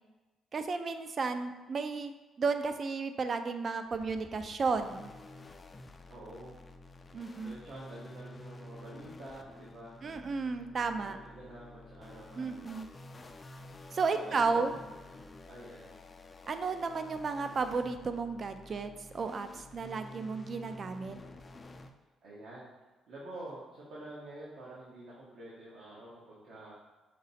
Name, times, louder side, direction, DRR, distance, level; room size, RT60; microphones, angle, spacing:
voice 1, 0.5-5.1 7.1-7.6 10.0-11.2 12.4-12.9 13.9-14.7 16.5-21.2, right 4 dB, 45° right, 8 dB, 0.3 m, -33 dB
sound 1, 3.9-21.9, left 2 dB, 30° left, 0.3 m, -50 dB
voice 2, 6.1-6.6 7.4-9.9 11.0-12.7 14.1-14.8 15.4-16.0 22.2-22.7 23.1-26.7, right 1 dB, 75° right, -7 dB, 1.0 m, -48 dB
5.1 x 2.0 x 4.1 m, 1.2 s
cardioid pair, 90°, 0 cm